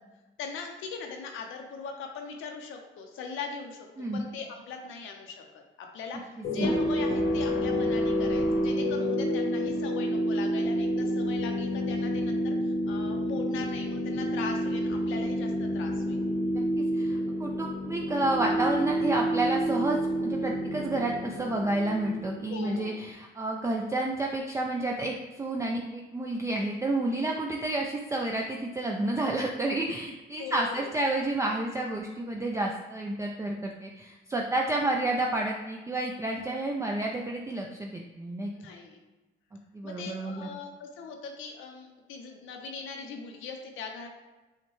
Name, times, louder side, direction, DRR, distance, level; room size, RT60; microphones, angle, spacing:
voice 1, 0.4-16.2 22.5-23.0 30.4-30.9 38.5-39.0 39.8-44.1, left 5 dB, 85° left, 3 dB, 0.6 m, -40 dB
sound 1, 6.4-22.7, equal, 55° left, 0.8 m, -29 dB
voice 2, 16.5-38.5 39.7-40.5, right 2 dB, 15° right, 0 dB, 0.4 m, -30 dB
5.5 x 2.2 x 3.1 m, 1.2 s
cardioid pair, 90°, 20 cm